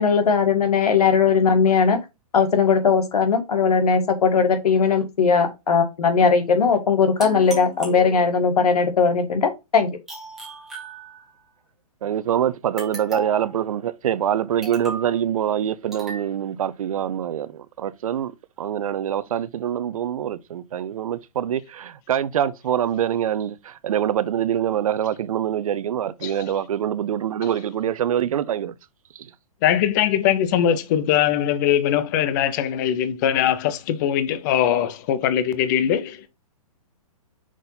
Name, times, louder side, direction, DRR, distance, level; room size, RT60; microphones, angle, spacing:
voice 1, 0.0-2.0 2.3-9.9, left 5 dB, 80° left, 1.9 m, -19 dB
sound 1, 7.2-8.6 10.1-11.5 12.8-13.5 14.6-15.1 15.9-16.3, right 2 dB, ahead, 2.3 m, -36 dB
voice 2, 12.0-18.3 18.6-28.7, right 10 dB, 65° right, 0.7 m, -25 dB
voice 3, 29.6-36.3, left 10 dB, 30° left, 0.7 m, -21 dB
6.1 x 4.1 x 4.0 m
hypercardioid pair, 155°, 19 cm